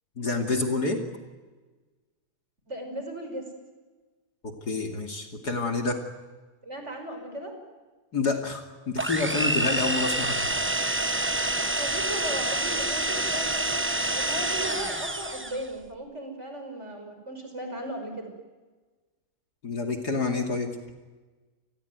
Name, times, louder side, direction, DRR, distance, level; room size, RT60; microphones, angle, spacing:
voice 1, 0.2-1.0 4.4-6.0 8.1-10.5 19.6-20.8, left 3 dB, 50° left, 4 dB, 3.1 m, -28 dB
voice 2, 2.7-3.4 6.6-7.5 11.7-18.3, equal, 30° right, 5 dB, 5.9 m, -36 dB
sound 1, 9.0-15.7, right 1 dB, 15° right, 0.5 m, -27 dB
29.5 x 20.0 x 9.3 m, 1.3 s
omnidirectional pair, 2.2 m